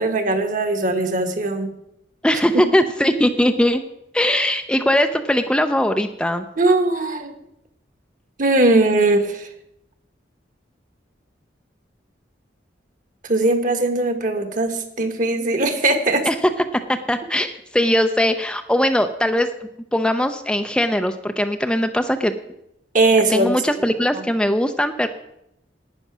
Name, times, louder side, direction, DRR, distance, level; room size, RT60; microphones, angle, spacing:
voice 1, 0.0-1.7 2.5-2.6 6.6-7.3 8.4-9.5 13.2-16.3 22.9-23.5 24.1-24.2, right 2 dB, 45° right, 8 dB, 1.4 m, -19 dB
voice 2, 2.2-3.8 4.1-6.5 16.3-16.4 17.1-22.3 23.3-25.1, left 1 dB, 5° left, 7 dB, 0.5 m, -20 dB
11.0 x 9.5 x 6.1 m, 0.81 s
head